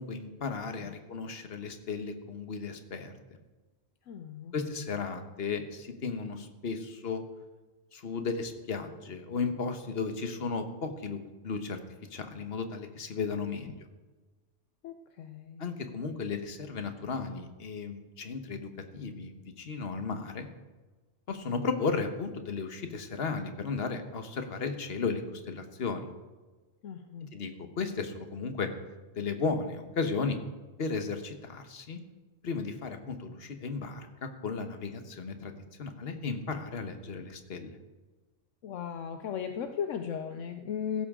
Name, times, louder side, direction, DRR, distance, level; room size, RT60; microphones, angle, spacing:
voice 1, 0.0-3.1 4.5-7.2 7.9-11.8 12.1-13.7 15.6-20.5 21.3-26.1 27.3-28.7 29.1-30.4 30.8-32.0 32.4-35.5 35.8-37.8, left 4 dB, 50° left, 7 dB, 1.4 m, -35 dB
voice 2, 4.1-4.9 13.6-13.7 14.8-15.6 26.8-27.3 38.6-41.1, left 8 dB, 75° left, 7 dB, 1.0 m, -37 dB
16.0 x 13.0 x 3.7 m, 1.3 s
omnidirectional pair, 1.3 m